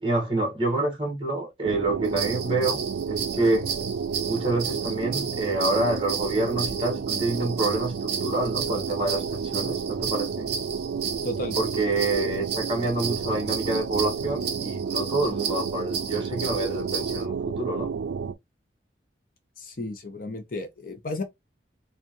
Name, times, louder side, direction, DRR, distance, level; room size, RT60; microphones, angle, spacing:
voice 1, 0.0-2.8 3.1-3.7 4.3-10.5 11.6-17.9, right 2 dB, 25° right, 1.6 m, -27 dB
sound 1, 1.6-18.3, right 6 dB, 80° right, 0.4 m, -31 dB
sound 2, 2.0-17.2, right 7 dB, 55° right, 1.0 m, -34 dB
voice 2, 11.2-11.6 19.6-21.2, left 1 dB, 50° left, 0.7 m, -33 dB
4.4 x 2.5 x 3.0 m
head